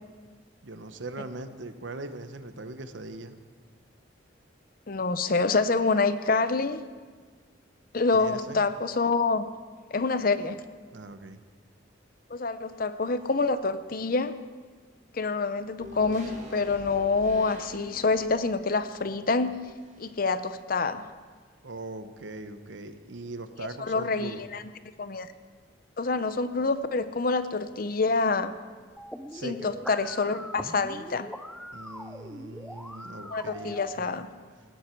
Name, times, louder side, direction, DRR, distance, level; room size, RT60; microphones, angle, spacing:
voice 1, 0.6-3.4 8.1-8.6 10.9-11.4 21.6-24.4 29.3-29.7 31.7-34.2, right 2 dB, 75° right, 9 dB, 1.0 m, -40 dB
voice 2, 4.9-6.8 7.9-9.4 9.9-10.6 12.3-14.4 15.1-19.6 20.0-21.1 23.8-24.6 25.0-25.3 26.0-28.5 29.4-31.3 33.3-34.3, left 4 dB, 50° left, 12 dB, 0.7 m, -27 dB
sound 1, 15.8-20.3 20.6-20.7, equal, 40° right, 4.1 m, -47 dB
sound 2, 29.0-34.0, equal, ahead, 0.5 m, -42 dB
18.5 x 13.0 x 4.6 m, 1.5 s
head